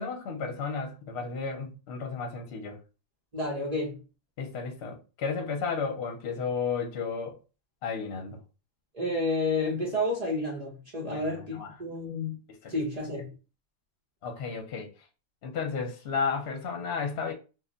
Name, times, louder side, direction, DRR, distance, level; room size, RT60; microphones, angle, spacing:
voice 1, 0.0-2.8 4.4-7.3 7.8-8.4 11.1-11.7 12.6-12.8 14.2-14.9 15.4-17.3, left 5 dB, 65° left, 0.9 m, -33 dB
voice 2, 3.3-3.9 8.9-12.4 12.7-13.3, left 2 dB, 35° right, 0.8 m, -30 dB
2.3 x 2.1 x 3.7 m
omnidirectional pair, 1.2 m